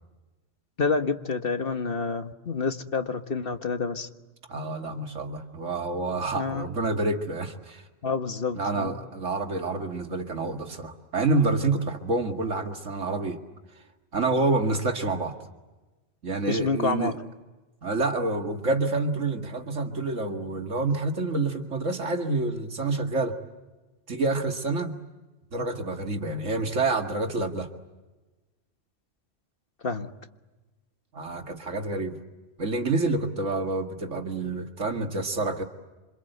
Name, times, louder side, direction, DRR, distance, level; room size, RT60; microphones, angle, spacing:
voice 1, 0.8-4.1 6.4-6.7 8.0-8.9 16.5-17.1 29.8-30.1, left 4 dB, 50° left, 7 dB, 1.6 m, -28 dB
voice 2, 4.5-7.8 8.5-13.4 14.1-15.3 16.2-17.2 17.8-23.4 24.1-25.0 25.5-27.7 31.1-32.2 32.6-35.6, right 3 dB, 85° right, 4 dB, 2.4 m, -28 dB
27.5 x 26.5 x 8.1 m, 1.2 s
omnidirectional pair, 1.2 m